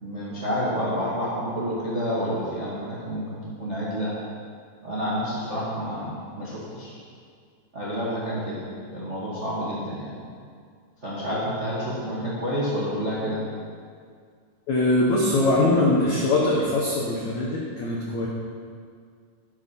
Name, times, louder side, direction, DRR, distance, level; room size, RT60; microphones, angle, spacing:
voice 1, 0.0-4.1 4.8-7.0 7.7-8.6 8.9-10.2 11.0-13.4, equal, 50° right, -8 dB, 0.8 m, -29 dB
voice 2, 14.7-18.3, left 2 dB, 85° left, -3 dB, 1.6 m, -22 dB
12.0 x 7.4 x 5.6 m, 2.1 s
omnidirectional pair, 5.0 m